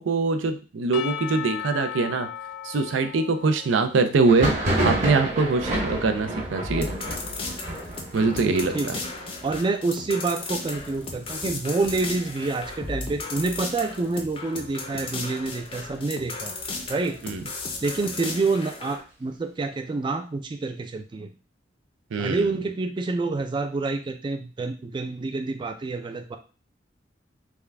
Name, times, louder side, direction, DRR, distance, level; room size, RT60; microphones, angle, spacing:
voice 1, 0.0-2.3 2.6-6.9 8.1-9.0 17.2-17.4 22.1-22.5, right 3 dB, 90° right, 8 dB, 0.5 m, -23 dB
Percussion / Church bell, 0.9-5.3, left 10 dB, 80° left, 0.4 m, -37 dB
Thunder, 4.2-13.7 14.0-14.7 14.9-15.9 16.3-18.0, right 1 dB, 40° right, 1.0 m, -31 dB
sound 1, 6.6-19.0, left 3 dB, 30° left, 0.5 m, -35 dB
voice 2, 9.4-16.6 16.9-17.2 17.8-21.3 22.2-26.4, right 3 dB, 25° right, 5 dB, 0.3 m, -27 dB
3.5 x 2.2 x 3.3 m, 0.34 s
head